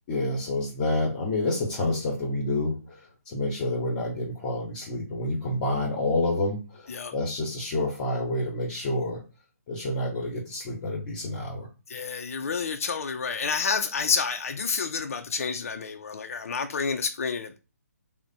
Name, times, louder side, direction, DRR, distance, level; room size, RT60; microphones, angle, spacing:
voice 1, 0.1-9.2 9.7-11.7, left 2 dB, 30° left, 0.8 m, -28 dB
voice 2, 11.9-17.6, left 5 dB, 60° left, 0.4 m, -29 dB
3.3 x 2.1 x 4.0 m
figure-of-eight pair, 140°, 9 cm